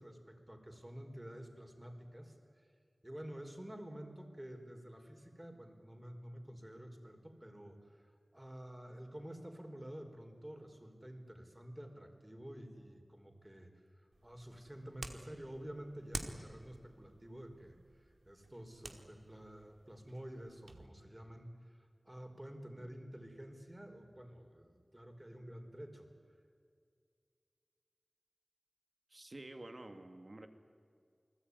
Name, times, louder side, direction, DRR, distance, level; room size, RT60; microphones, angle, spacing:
voice 1, 0.0-2.6 3.0-13.7 14.2-26.1, equal, 20° right, 4 dB, 4.8 m, -50 dB
sound 1, 14.1-20.9, right 2 dB, 70° right, 2.6 m, -50 dB
voice 2, 29.1-30.5, right 2 dB, 50° right, 7 dB, 2.6 m, -50 dB
28.5 x 20.5 x 9.9 m, 2.2 s
wide cardioid pair, 45°, 0 cm